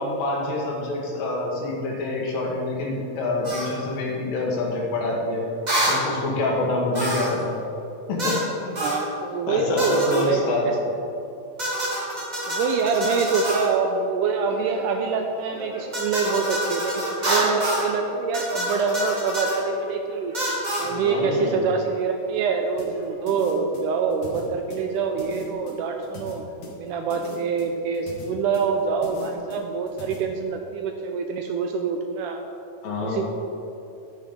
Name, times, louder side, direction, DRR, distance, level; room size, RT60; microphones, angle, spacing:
voice 1, 0.0-5.4 5.9-7.6 8.1-8.8 9.5-10.7 20.8-21.7 32.8-33.3, left 2 dB, 85° left, -2 dB, 3.1 m, -26 dB
sound 1, 3.4-3.7 5.7-6.0 6.9-7.4 8.2-8.5 8.8-9.0 9.8-10.3 11.6-13.7 15.9-17.9 18.3-19.6 20.3-20.9, right 1 dB, 60° right, 0.4 m, -27 dB
voice 2, 8.8-10.8 12.5-20.4 20.8-26.4 26.7-32.4 33.0-33.3, right 5 dB, 80° right, 4 dB, 2.0 m, -25 dB
sound 2, 14.5-15.2 15.5-17.3 17.7-18.1 18.5-19.1 19.5-20.4 20.8-21.4 21.9-22.0 22.6-23.2 23.6-23.7, right 1 dB, 40° right, 1.0 m, -40 dB
sound 3, 22.8-30.2, left 4 dB, 65° left, 3.0 m, -41 dB
11.0 x 9.2 x 3.7 m, 2.8 s
omnidirectional pair, 3.9 m